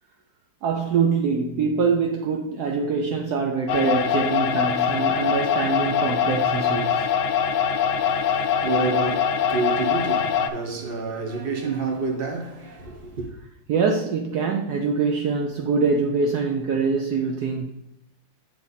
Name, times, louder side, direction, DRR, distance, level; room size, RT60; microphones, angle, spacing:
voice 1, 0.6-7.1 13.7-17.7, right 5 dB, 75° right, 0.9 m, -24 dB
sound 1, 3.7-10.5, left 7 dB, 75° left, 1.3 m, -23 dB
voice 2, 7.9-13.3, right 4 dB, 35° right, 1.0 m, -29 dB
9.4 x 3.4 x 4.0 m
omnidirectional pair, 2.4 m